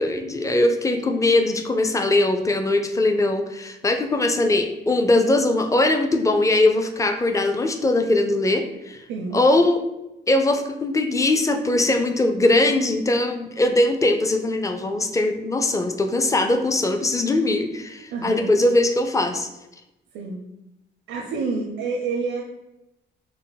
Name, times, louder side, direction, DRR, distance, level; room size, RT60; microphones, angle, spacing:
voice 1, 0.0-9.0 9.3-9.8 10.3-19.5, left 2 dB, 15° left, 6 dB, 0.4 m, -21 dB
voice 2, 9.1-9.4 18.1-18.6 20.1-20.4 21.1-22.4, right 4 dB, 85° right, -1 dB, 0.5 m, -28 dB
4.3 x 2.1 x 3.9 m, 0.94 s
cardioid pair, 90°, 20 cm